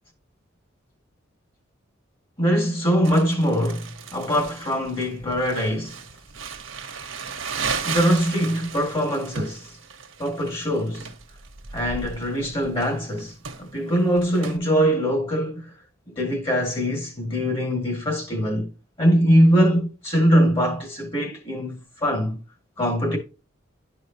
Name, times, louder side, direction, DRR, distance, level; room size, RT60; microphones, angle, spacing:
voice 1, 2.4-6.0 7.9-9.7 10.2-11.1 11.7-13.3 13.6-15.7 16.1-22.4 22.8-23.2, equal, 25° left, 2.2 m, -22 dB
Crumpling crinkling, 3.0-14.6, right 5 dB, 75° right, 1.3 m, -35 dB
11.5 x 5.0 x 2.8 m
head